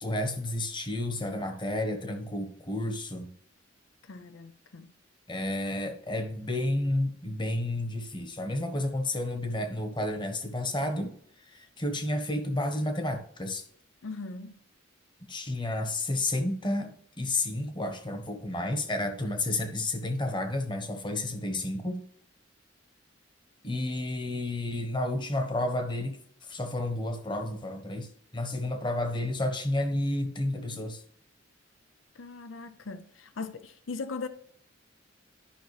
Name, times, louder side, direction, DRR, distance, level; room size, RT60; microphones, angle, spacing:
voice 1, 0.0-3.3 5.3-11.1 11.4-13.6 15.3-22.0 23.6-26.2 26.5-31.0, left 1 dB, 25° left, 1.2 m, -31 dB
voice 2, 4.0-4.9 14.0-14.5 32.1-34.3, left 4 dB, 80° left, 0.6 m, -39 dB
12.0 x 5.7 x 3.2 m
head